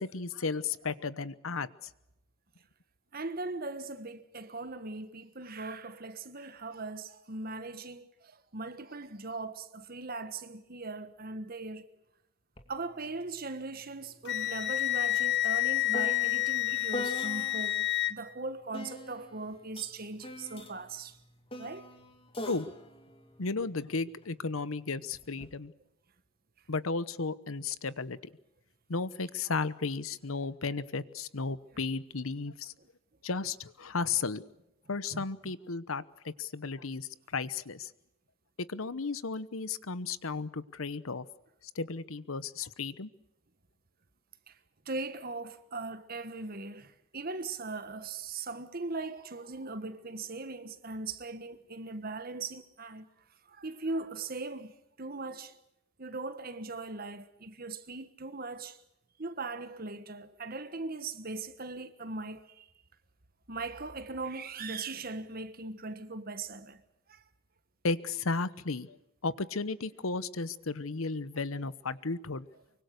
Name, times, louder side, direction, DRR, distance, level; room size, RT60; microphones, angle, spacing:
voice 1, 0.0-1.9 22.4-22.7 23.4-25.7 26.7-28.2 28.9-32.7 33.2-34.4 34.9-37.9 38.6-41.3 41.7-43.1 67.8-69.0 69.2-72.5, left 4 dB, 85° left, 1.0 m, -34 dB
voice 2, 3.1-11.9 12.7-21.2 21.6-21.9 35.1-35.2 44.5-44.6 44.8-53.1 53.5-54.7 55.0-55.5 56.0-58.8 59.2-62.7 63.5-66.8 67.1-67.2, right 3 dB, 45° right, 1.5 m, -39 dB
sound 1, 12.6-12.7 13.0-17.8 18.7-24.3 25.1-25.5, left 1 dB, 25° left, 2.3 m, -43 dB
Wind instrument woodwind instrument, 14.2-18.1, left 15 dB, 55° left, 1.2 m, -29 dB
24.5 x 24.0 x 6.6 m
head